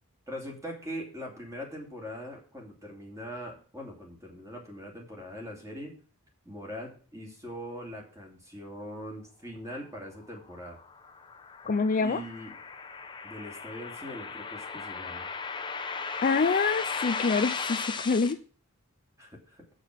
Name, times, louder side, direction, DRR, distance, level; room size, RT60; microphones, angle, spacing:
voice 1, 0.3-5.9 6.4-10.8 12.0-12.5 13.2-15.3 19.2-19.6, equal, 15° right, 0 dB, 2.7 m, -41 dB
sound 1, 10.5-18.3, left 5 dB, 20° left, 0.9 m, -36 dB
voice 2, 11.7-12.2 16.2-18.4, left 4 dB, 40° left, 9 dB, 0.4 m, -26 dB
7.7 x 6.6 x 6.1 m, 0.41 s
head